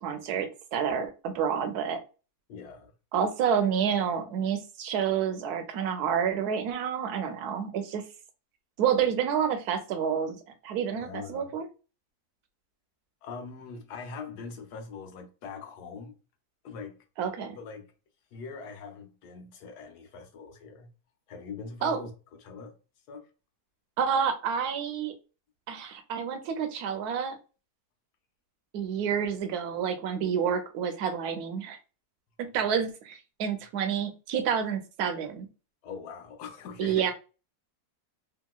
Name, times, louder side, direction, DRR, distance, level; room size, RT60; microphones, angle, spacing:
voice 1, 0.0-2.0 3.1-8.0 8.8-11.7 17.2-17.6 21.8-22.0 24.0-25.1 25.7-27.4 28.7-31.8 32.4-35.5 36.8-37.1, right 7 dB, 75° right, 1.1 m, -29 dB
voice 2, 2.5-2.9 11.0-11.5 13.2-16.2 16.6-17.0 17.5-17.9 18.3-20.9 21.3-22.1 22.4-22.7 23.1-23.3 32.7-32.8 35.8-37.1, left 5 dB, 85° left, 1.2 m, -42 dB
2.9 x 2.8 x 2.2 m
omnidirectional pair, 1.7 m